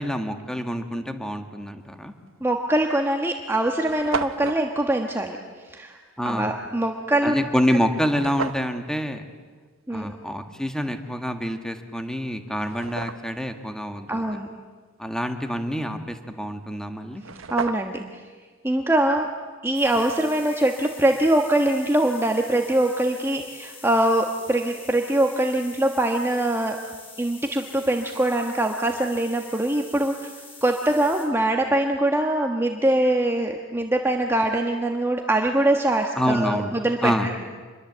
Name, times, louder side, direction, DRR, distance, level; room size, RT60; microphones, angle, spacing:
voice 1, 0.0-2.1 6.2-6.5 7.2-9.2 9.9-14.2 15.0-17.2 36.1-36.7 37.0-37.3, equal, 5° left, 6 dB, 1.7 m, -27 dB
sound 1, 2.3-2.5 3.2-3.3 3.5-3.6 3.8-4.6 8.1-8.7 11.7-11.8 12.3-13.5 16.8-16.9 17.1-18.1, right 5 dB, 90° right, 1.1 m, -33 dB
voice 2, 2.4-5.4 5.7-6.0 6.2-7.4 9.9-10.1 14.1-14.5 17.5-18.2 18.6-19.3 19.6-26.8 27.2-30.3 30.6-37.3, right 1 dB, 10° right, 3 dB, 1.3 m, -23 dB
sound 2, 19.7-31.3, left 2 dB, 30° left, 6.3 m, -45 dB
26.5 x 22.0 x 8.1 m, 1.5 s
head